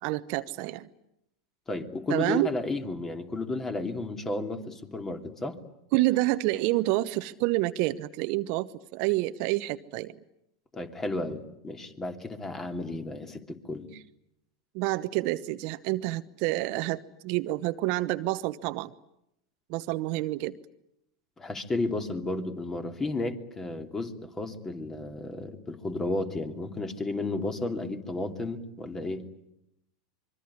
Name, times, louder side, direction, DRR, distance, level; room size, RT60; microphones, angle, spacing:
voice 1, 0.0-0.9 2.1-2.5 5.9-10.2 14.7-18.9 19.7-20.6, right 18 dB, 50° right, 12 dB, 1.0 m, -28 dB
voice 2, 1.7-5.6 10.7-13.9 21.4-29.2, left 2 dB, 15° left, 6 dB, 3.0 m, -33 dB
25.0 x 23.5 x 9.9 m, 0.82 s
hypercardioid pair, 95°, 2 cm